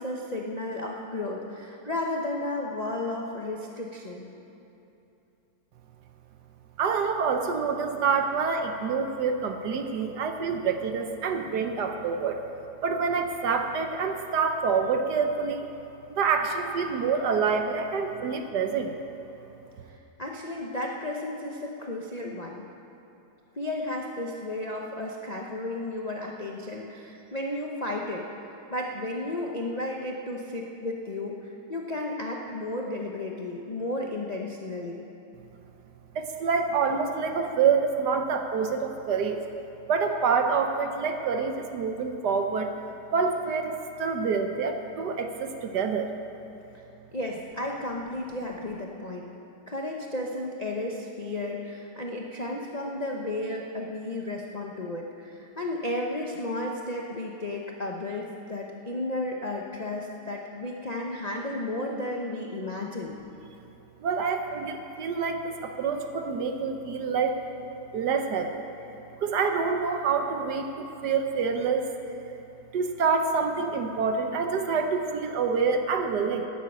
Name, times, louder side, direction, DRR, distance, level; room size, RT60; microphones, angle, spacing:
voice 1, 0.0-4.3 19.9-22.6 23.5-28.2 28.7-35.1 46.7-46.8 47.1-49.3 49.7-63.2, left 1 dB, 80° left, -1 dB, 0.3 m, -33 dB
voice 2, 6.8-12.4 12.8-15.6 16.1-18.9 36.1-39.4 39.9-42.7 43.1-46.1 64.0-67.4 67.9-68.6 69.2-71.9 72.7-76.5, right 5 dB, 60° right, 5 dB, 1.2 m, -27 dB
11.5 x 9.0 x 8.8 m, 2.8 s
omnidirectional pair, 2.3 m